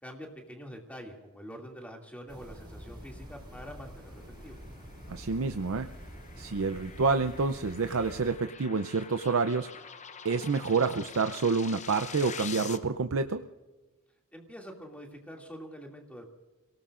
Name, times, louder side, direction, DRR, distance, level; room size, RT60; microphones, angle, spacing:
voice 1, 0.0-4.6 14.3-16.2, equal, 5° left, 1 dB, 2.4 m, -45 dB
sound 1, 2.3-8.3, equal, 20° right, 6.9 m, -47 dB
sound 2, 3.9-12.8, left 7 dB, 35° left, 0.8 m, -46 dB
voice 2, 5.1-5.9 6.4-9.7 10.2-13.4, right 4 dB, 65° right, 8 dB, 0.6 m, -28 dB
29.0 x 18.5 x 2.5 m, 1.2 s
head